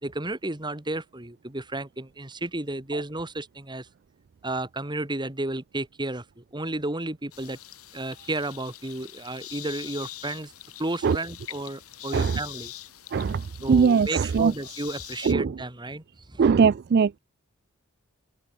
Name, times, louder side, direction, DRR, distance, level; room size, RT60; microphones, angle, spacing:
voice 1, 0.0-3.9 4.4-7.6 7.9-10.5 10.8-12.7 13.6-16.0 16.3-16.4, right 2 dB, 20° right, 2.1 m, -32 dB
sound 1, 7.3-15.3, left 14 dB, 80° left, 1.9 m, -43 dB
voice 2, 13.1-14.5 15.2-15.5 16.4-17.2, right 6 dB, 50° right, 0.3 m, -21 dB
open air
head